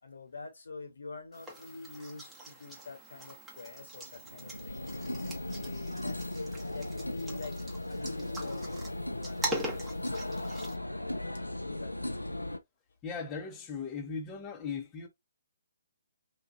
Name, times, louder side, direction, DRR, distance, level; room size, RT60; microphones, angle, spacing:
voice 1, 0.0-5.0 5.5-7.6 7.9-10.3 11.6-12.3, left 3 dB, 65° left, 1.1 m, -47 dB
sound 1, 1.3-10.8, right 1 dB, 10° right, 1.0 m, -42 dB
sound 2, 3.8-12.6, left 1 dB, 85° left, 0.4 m, -37 dB
voice 2, 13.0-15.1, left 5 dB, 20° left, 0.8 m, -38 dB
3.3 x 2.4 x 2.6 m
figure-of-eight pair, 135°, 0 cm